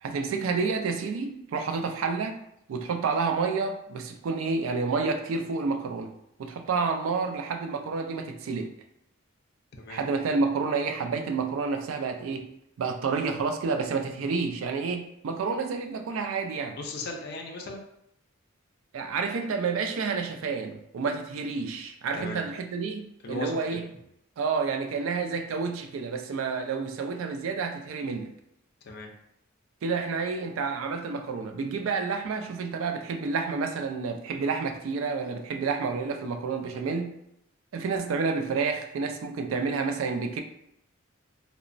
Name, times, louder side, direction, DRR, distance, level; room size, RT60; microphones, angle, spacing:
voice 1, 0.0-2.4 2.7-6.1 6.4-8.7 9.9-12.5 12.8-16.8 18.9-23.9 24.4-28.3 29.8-37.2 37.7-40.4, right 4 dB, 80° right, 6 dB, 0.3 m, -29 dB
voice 2, 16.8-17.8 22.1-22.4 23.2-23.6 28.9-29.1, left 2 dB, 55° left, 1 dB, 0.4 m, -36 dB
2.9 x 2.0 x 2.5 m, 0.77 s
head